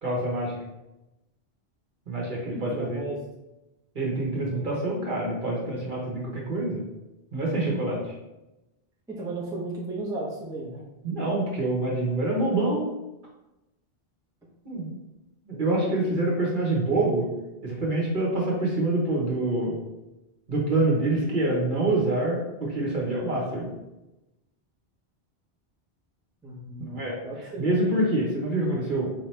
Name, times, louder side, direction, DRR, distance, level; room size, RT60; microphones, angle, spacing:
voice 1, 0.0-0.6 2.1-3.0 3.9-6.8 7.3-8.1 11.0-12.9 14.6-14.9 15.5-17.3 17.6-19.8 20.5-23.7 26.8-27.2 27.6-29.1, right 2 dB, 50° right, -4 dB, 1.3 m, -26 dB
voice 2, 2.5-3.2 9.1-10.8 26.4-27.7, right 2 dB, 5° right, -5 dB, 0.8 m, -35 dB
5.0 x 2.9 x 3.3 m, 0.97 s
omnidirectional pair, 1.1 m